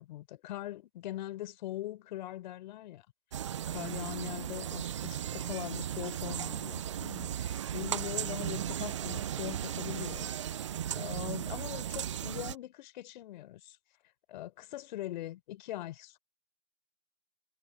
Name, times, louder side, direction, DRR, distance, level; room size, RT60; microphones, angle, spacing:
voice 1, 0.0-3.1 3.7-10.3 10.6-13.8 14.3-16.2, left 14 dB, 35° left, 4.2 m, -41 dB
sound 1, 3.3-12.6, right 10 dB, 25° right, 0.5 m, -36 dB
figure-of-eight pair, 135°, 38 cm